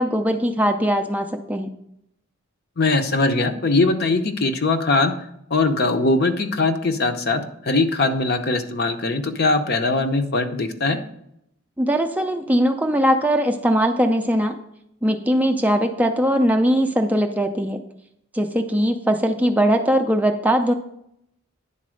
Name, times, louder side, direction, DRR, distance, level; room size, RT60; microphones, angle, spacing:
voice 1, 0.0-1.7 11.8-14.6 15.0-17.8 18.3-20.7, equal, 5° right, 5 dB, 0.4 m, -20 dB
voice 2, 2.8-5.1 5.5-11.0, left 3 dB, 50° left, 7 dB, 0.7 m, -21 dB
9.9 x 4.2 x 6.3 m, 0.77 s
head